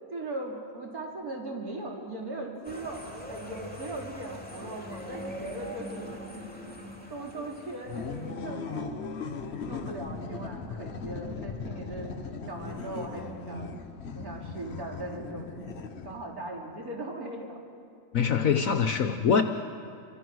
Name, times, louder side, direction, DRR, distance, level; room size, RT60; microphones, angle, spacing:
voice 1, 0.1-6.2 6.5-6.7 7.1-9.0 9.4-12.2 12.5-13.8 14.1-15.5 16.0-17.6, right 2 dB, 65° right, -1 dB, 4.1 m, -39 dB
sound 1, 2.6-8.3, equal, 5° left, 2.9 m, -42 dB
sound 2, 7.9-16.4, left 4 dB, 45° left, 1.3 m, -38 dB
voice 2, 18.1-19.4, left 6 dB, 65° left, 7 dB, 1.3 m, -24 dB
29.0 x 25.5 x 6.3 m, 2.5 s
omnidirectional pair, 1.7 m